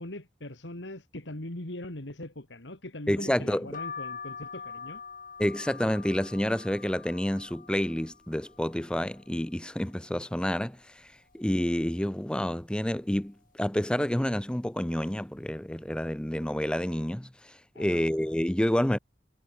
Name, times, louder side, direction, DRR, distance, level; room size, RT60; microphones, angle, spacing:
voice 1, 0.0-5.0 17.7-18.0, left 1 dB, 70° left, 2.8 m, -41 dB
voice 2, 3.1-3.7 5.4-19.0, equal, 5° left, 0.5 m, -29 dB
sound 1, 3.7-9.4 9.9-10.6 11.0-11.1 11.3-12.4 12.9-13.3 14.0-14.4 15.2-15.4 15.7-15.9, left 5 dB, 50° left, 7.7 m, -44 dB
head